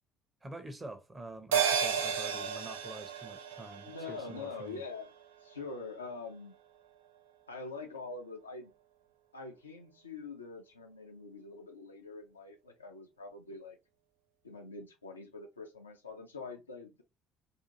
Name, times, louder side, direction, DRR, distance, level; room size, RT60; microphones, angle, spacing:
voice 1, 0.4-4.8, right 2 dB, 20° right, 0.8 m, -47 dB
sound 1, 1.5-6.2 6.5-6.6, right 7 dB, 80° right, 0.4 m, -34 dB
voice 2, 3.9-5.1 5.4-6.6 7.5-8.7 9.3-13.8 14.4-17.0, left 4 dB, 90° left, 0.4 m, -44 dB
2.7 x 2.4 x 2.6 m
figure-of-eight pair, 55°, 0 cm